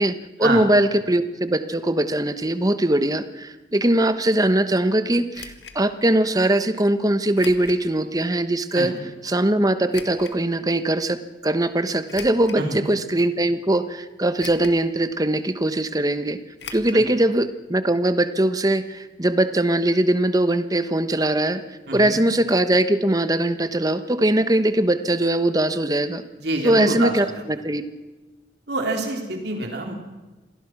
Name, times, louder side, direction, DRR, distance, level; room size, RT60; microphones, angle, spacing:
voice 1, 0.0-8.9 9.2-16.4 16.7-21.6 21.9-26.2 26.6-27.3 27.6-27.9, right 1 dB, 20° right, 11 dB, 1.1 m, -21 dB
sound 1, 5.3-5.8 7.3-7.8 8.4-8.5 9.9-10.4 12.1-12.7 13.3-13.4 14.4-14.9 15.1-15.2 16.6-17.0 17.3-17.4 17.7-17.8, left 6 dB, 70° left, 2.0 m, -39 dB
voice 2, 21.9-22.2 26.4-27.4 28.7-30.0, right 2 dB, 60° right, 2 dB, 3.5 m, -27 dB
26.5 x 18.0 x 6.1 m, 1.1 s
head